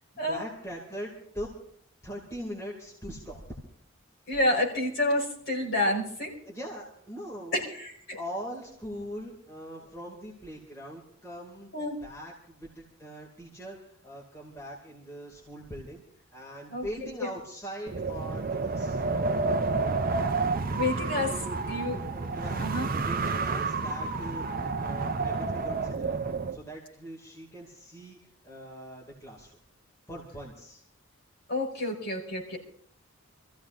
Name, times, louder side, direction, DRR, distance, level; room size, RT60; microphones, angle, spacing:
voice 1, 0.1-1.5 2.0-3.6 6.5-7.6 8.1-11.7 12.0-16.0 16.3-19.0 21.3-21.6 22.1-22.6 22.9-24.4 24.8-26.2 26.5-29.6 30.1-30.8 31.7-31.8, equal, 15° left, -3 dB, 2.4 m, -41 dB
voice 2, 4.3-6.4 7.5-8.2 11.7-12.0 16.7-16.9 17.2-17.3 20.8-21.3 21.7-22.0 22.5-22.9 31.5-32.6, left 1 dB, 55° left, -2 dB, 5.3 m, -29 dB
Wind, 17.9-26.6, right 3 dB, 40° right, 0.6 m, -30 dB
27.5 x 15.0 x 2.6 m, 0.63 s
head